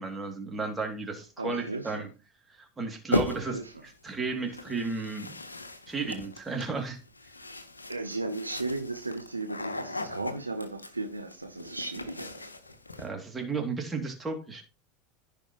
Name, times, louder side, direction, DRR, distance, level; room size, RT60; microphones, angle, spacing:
voice 1, 0.0-2.1 2.6-3.6 4.0-5.3 5.9-7.0 13.0-14.6, right 4 dB, 15° right, 2.6 m, -33 dB
voice 2, 1.4-2.1 3.3-3.7 7.9-12.5, right 2 dB, 85° right, 0.9 m, -36 dB
sound 1, 3.1-3.7 4.5-13.1, left 2 dB, 85° left, 0.9 m, -37 dB
15.0 x 5.2 x 3.0 m
figure-of-eight pair, 80°, 0 cm